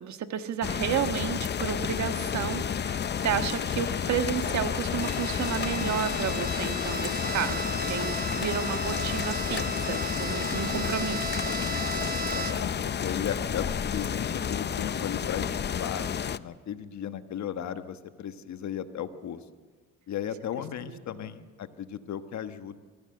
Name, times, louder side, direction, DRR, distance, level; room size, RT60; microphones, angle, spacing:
voice 1, 0.0-11.5 20.9-21.3, right 9 dB, 65° right, 8 dB, 1.5 m, -32 dB
sound 1, 0.6-16.4, left 7 dB, 35° left, 0.6 m, -31 dB
sound 2, 2.4-7.6, left 1 dB, 10° left, 4.6 m, -52 dB
Bowed string instrument, 5.0-12.8, right 3 dB, 30° right, 2.3 m, -36 dB
voice 2, 9.4-10.0 12.2-19.4 20.1-22.8, left 9 dB, 65° left, 9 dB, 1.3 m, -36 dB
23.0 x 16.5 x 7.8 m, 1.4 s
cardioid pair, 90°, 30 cm